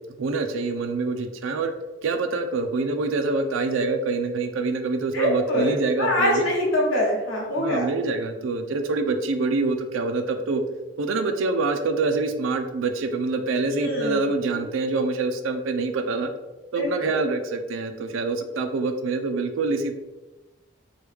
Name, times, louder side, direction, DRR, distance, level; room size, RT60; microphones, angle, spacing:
voice 1, 0.2-1.7 2.0-6.5 7.6-10.6 11.0-16.3 16.7-19.9, right 3 dB, 85° right, 7 dB, 0.4 m, -25 dB
voice 2, 5.1-7.9 13.7-14.2 16.7-16.9, left 1 dB, 90° left, -3 dB, 1.1 m, -24 dB
3.1 x 2.2 x 3.3 m, 1.1 s
head